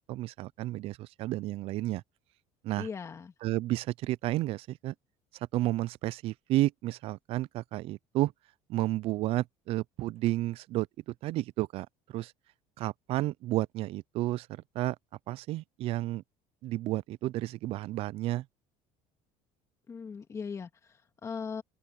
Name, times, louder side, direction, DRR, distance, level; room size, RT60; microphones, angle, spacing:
voice 1, 0.1-2.0 2.6-2.9 3.4-4.9 5.5-8.3 8.7-12.3 12.8-15.0 15.3-16.2 16.6-18.5, right 16 dB, 50° right, 0.4 m, -32 dB
voice 2, 2.8-3.3 19.9-21.6, left 5 dB, 20° left, 2.1 m, -39 dB
open air
cardioid pair, 160°, 13 cm